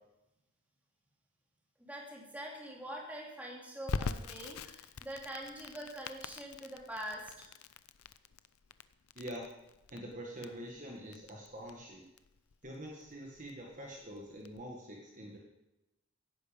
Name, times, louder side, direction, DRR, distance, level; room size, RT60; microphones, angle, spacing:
voice 1, 1.8-7.5, right 1 dB, 5° right, -2 dB, 2.8 m, -44 dB
Crackle, 3.9-14.6, left 4 dB, 80° left, 0.6 m, -44 dB
voice 2, 9.1-9.5 9.9-12.1 12.6-15.4, equal, 35° right, -1 dB, 1.7 m, -45 dB
16.5 x 10.0 x 5.2 m, 0.94 s
head